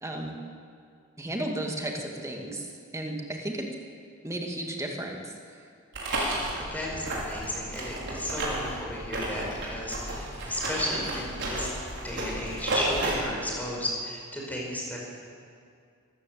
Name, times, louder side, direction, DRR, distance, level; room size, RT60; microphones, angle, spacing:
voice 1, 0.0-0.3 1.2-2.6 2.9-3.7 4.2-5.2, right 1 dB, 15° right, 1 dB, 2.3 m, -33 dB
sound 1, 5.9-13.2, right 1 dB, 55° right, 5.5 m, -33 dB
voice 2, 6.6-11.7 12.0-15.0, equal, 5° left, -2 dB, 5.2 m, -33 dB
23.5 x 14.5 x 8.2 m, 2.3 s
head